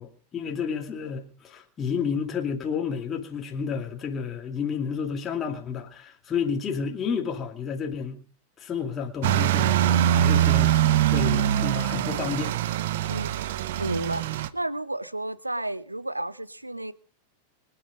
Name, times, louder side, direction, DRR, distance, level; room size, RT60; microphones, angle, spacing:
voice 1, 0.0-8.2 8.6-10.7 11.0-12.5, left 6 dB, 25° left, 2.4 m, -31 dB
sound 1, 9.2-14.5, right 11 dB, 55° right, 0.8 m, -23 dB
voice 2, 13.1-16.9, right 1 dB, 85° right, 0.8 m, -32 dB
24.5 x 8.8 x 5.2 m
figure-of-eight pair, 90°, 0 cm